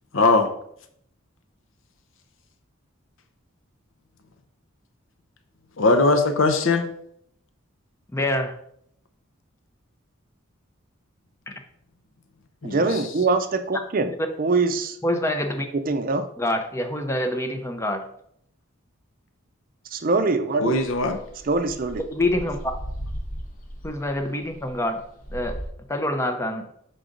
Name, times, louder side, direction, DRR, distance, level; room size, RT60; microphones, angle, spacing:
voice 1, 0.1-0.5 5.8-6.9 12.6-12.9 20.6-21.2, left 3 dB, 70° left, 8 dB, 0.7 m, -20 dB
voice 2, 8.1-8.5 11.5-11.6 15.0-15.7 16.4-18.0 22.1-22.6 23.8-25.0 25.3-25.6 25.9-26.7, left 1 dB, 15° left, 6 dB, 0.6 m, -26 dB
voice 3, 12.6-14.1 14.4-15.0 15.9-16.3 19.9-20.7 21.4-22.0, right 3 dB, 45° right, 9 dB, 0.5 m, -23 dB
sound 1, 20.7-25.7, equal, 40° left, 1.0 m, -36 dB
6.5 x 3.9 x 3.8 m, 0.71 s
head